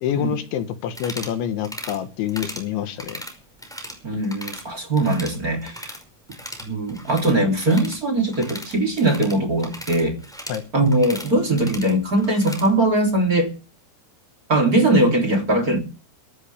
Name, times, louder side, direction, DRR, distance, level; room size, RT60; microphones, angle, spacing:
voice 1, 0.0-3.2 10.5-10.6, left 10 dB, 75° left, 3.7 m, -27 dB
sound 1, 0.9-1.4 1.6-2.0 2.3-2.7 3.0-4.6 4.9-6.0 6.3-12.7, equal, ahead, 4.6 m, -37 dB
voice 2, 4.0-5.9 6.6-10.2 10.7-13.5 14.5-15.8, right 1 dB, 25° right, 2.7 m, -20 dB
22.5 x 13.5 x 3.4 m
omnidirectional pair, 5.6 m